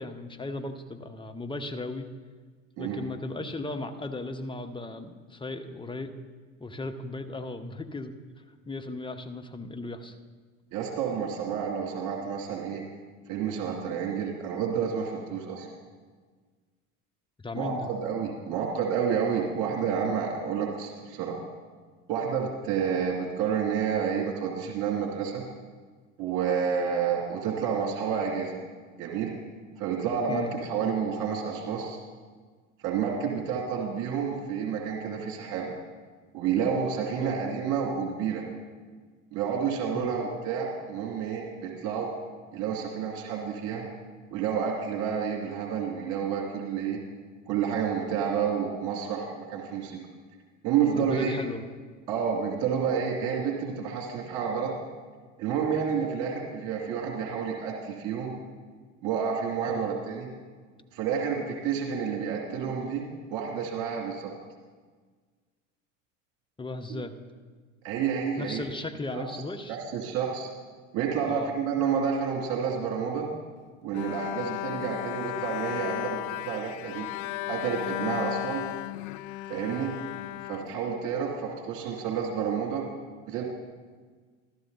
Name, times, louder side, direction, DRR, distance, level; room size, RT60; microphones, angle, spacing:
voice 1, 0.0-2.1 2.8-6.1 6.6-8.1 8.7-10.1 17.4-17.9 30.3-30.6 37.2-37.4 39.9-40.1 50.9-51.7 59.7-59.9 66.6-67.1 68.4-69.8 71.2-71.5 79.7-79.9, left 2 dB, 10° left, 6 dB, 1.0 m, -36 dB
voice 2, 10.7-12.8 13.3-15.7 17.5-21.4 22.1-25.4 26.2-28.5 29.0-29.3 29.8-32.0 32.8-35.7 36.3-38.4 39.3-42.1 42.5-43.9 44.3-47.0 47.4-50.0 50.6-51.3 52.1-54.7 55.4-58.3 59.0-60.3 60.9-63.0 63.3-64.3 66.9-67.0 67.8-68.6 69.1-69.4 69.7-70.5 70.9-73.3 73.8-77.1 77.5-78.6 79.5-79.9 80.4-82.8 83.3-83.4, right 7 dB, 50° right, -1 dB, 2.6 m, -29 dB
Bowed string instrument, 73.9-81.3, left 17 dB, 60° left, 0.5 m, -35 dB
14.0 x 13.0 x 4.0 m, 1.5 s
hypercardioid pair, 80°, 40 cm